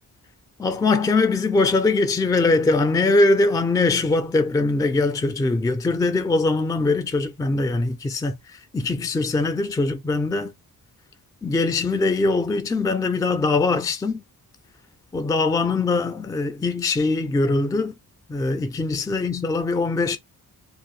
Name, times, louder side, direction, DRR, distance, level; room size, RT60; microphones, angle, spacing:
voice 1, 0.6-8.4 8.7-10.5 11.4-14.2 15.1-17.9 18.3-20.2, left 3 dB, 10° left, 0.3 m, -22 dB
2.7 x 2.6 x 3.0 m
wide cardioid pair, 140°, 37 cm